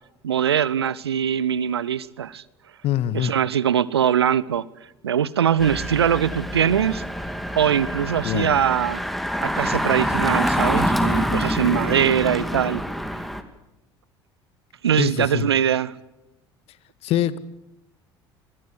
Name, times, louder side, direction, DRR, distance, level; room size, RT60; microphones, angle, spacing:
voice 1, 0.2-2.4 3.1-4.6 5.0-7.0 7.5-9.0 9.4-12.8 14.8-15.9, right 9 dB, 75° right, 0.9 m, -22 dB
voice 2, 2.8-3.3 8.2-8.6 15.0-15.5 17.0-17.4, left 11 dB, 50° left, 1.6 m, -24 dB
Engine, 5.6-13.4, equal, ahead, 2.7 m, -26 dB
26.5 x 22.5 x 8.3 m
figure-of-eight pair, 60°, 14 cm